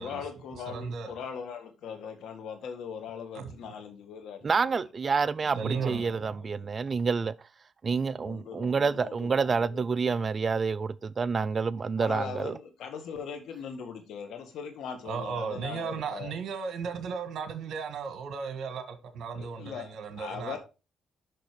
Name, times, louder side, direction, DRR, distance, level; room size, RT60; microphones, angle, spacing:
voice 1, 0.0-4.9 5.6-6.2 6.5-7.0 8.2-9.8 12.0-16.3 19.4-19.9 20.2-20.6, left 7 dB, 75° left, 1.7 m, -40 dB
voice 2, 0.7-1.1 3.3-3.5 5.5-6.4 8.2-8.3 15.0-20.6, right 6 dB, 70° right, 1.5 m, -35 dB
voice 3, 4.4-7.3 7.8-12.6, right 5 dB, 40° right, 0.4 m, -28 dB
6.6 x 6.1 x 5.0 m
cardioid pair, 90°, 0 cm